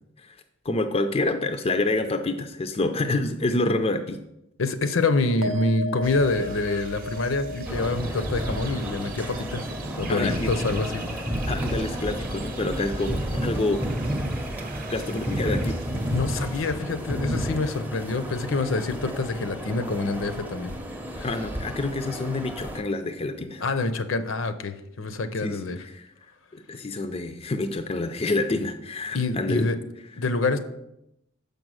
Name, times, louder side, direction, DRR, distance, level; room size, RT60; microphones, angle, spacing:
voice 1, 0.6-4.2 10.1-10.5 11.5-13.8 14.9-16.0 21.2-23.6 25.4-26.1 26.5-29.7, left 2 dB, 30° left, 7 dB, 0.4 m, -27 dB
voice 2, 4.6-9.7 10.0-11.0 16.1-20.7 21.2-21.3 23.6-25.8 29.1-29.8 30.2-30.6, left 3 dB, 65° left, 10 dB, 0.6 m, -26 dB
sound 1, 5.4-12.1 12.4-13.0, equal, 75° right, 0.7 m, -38 dB
sound 2, 6.0-16.7, right 2 dB, 40° right, 0.8 m, -41 dB
sound 3, 7.7-22.8, equal, 10° right, 0.7 m, -31 dB
6.7 x 5.3 x 6.3 m, 0.84 s
head